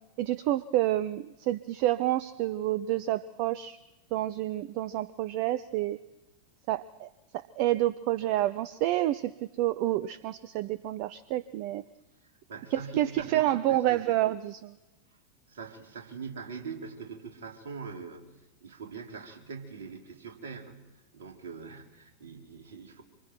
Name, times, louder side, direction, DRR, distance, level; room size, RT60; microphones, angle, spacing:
voice 1, 0.2-3.8 4.1-6.0 6.7-7.1 7.6-9.3 9.6-11.8 12.7-14.8, right 14 dB, 45° right, 17 dB, 0.6 m, -28 dB
voice 2, 12.5-13.4 13.7-14.0 15.5-18.3 18.6-23.0, right 5 dB, 60° right, 2 dB, 3.2 m, -42 dB
26.0 x 24.0 x 4.7 m, 1.1 s
figure-of-eight pair, 90°, 0 cm